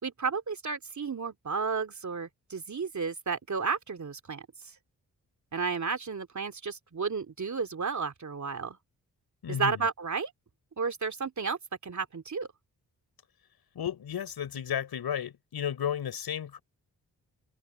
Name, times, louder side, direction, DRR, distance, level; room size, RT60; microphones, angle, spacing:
voice 1, 0.0-4.5 5.5-8.8 9.5-10.3 10.8-12.5, right 5 dB, 50° right, 2.9 m, -32 dB
voice 2, 9.4-9.9 13.7-16.6, left 9 dB, 75° left, 6.4 m, -33 dB
supercardioid pair, 45°, 38 cm